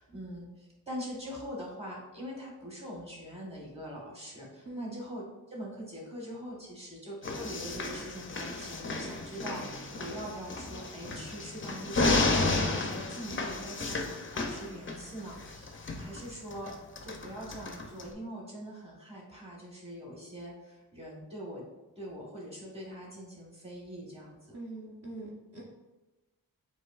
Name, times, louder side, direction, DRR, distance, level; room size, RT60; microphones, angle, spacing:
voice 1, 0.0-21.6 22.0-24.6, equal, 15° right, -3 dB, 1.3 m, -43 dB
voice 2, 4.6-5.0 24.5-25.6, right 2 dB, 40° right, -6 dB, 0.9 m, -42 dB
sound 1, 7.2-18.1, left 2 dB, 35° left, 0.5 m, -33 dB
7.5 x 2.6 x 2.4 m, 1.1 s
wide cardioid pair, 110°, 36 cm